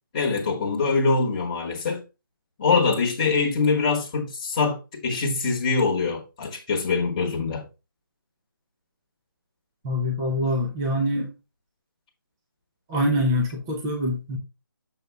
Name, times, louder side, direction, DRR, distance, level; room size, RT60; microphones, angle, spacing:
voice 1, 0.1-2.0 2.6-7.7, left 4 dB, 20° left, 1.3 m, -24 dB
voice 2, 9.8-11.3 12.9-14.4, equal, 10° right, 0.7 m, -24 dB
7.0 x 5.2 x 3.3 m
hypercardioid pair, 170°, 12 cm